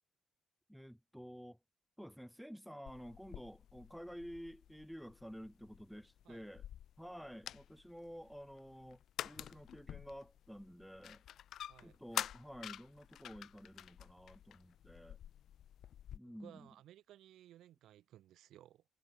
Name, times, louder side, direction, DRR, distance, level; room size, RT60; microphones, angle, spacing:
voice 1, 0.7-1.6 2.0-6.6 7.0-11.2 11.8-15.2 16.1-16.7, equal, ahead, 1.0 m, -51 dB
sound 1, 2.9-16.2, left 10 dB, 70° left, 0.3 m, -49 dB
voice 2, 16.2-18.8, right 12 dB, 80° right, 1.1 m, -59 dB
cardioid pair, 90°, 0 cm